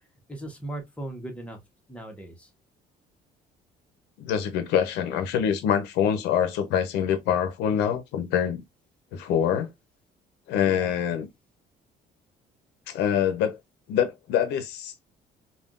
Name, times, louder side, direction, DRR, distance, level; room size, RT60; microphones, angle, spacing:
voice 1, 0.3-1.6 1.9-2.5 10.6-10.9, right 1 dB, 5° left, 1.1 m, -38 dB
voice 2, 4.2-8.6 9.1-9.7 10.5-11.3 12.9-13.6 13.9-15.0, left 9 dB, 90° left, 0.6 m, -25 dB
3.5 x 2.3 x 2.3 m
cardioid pair, 110°, 17 cm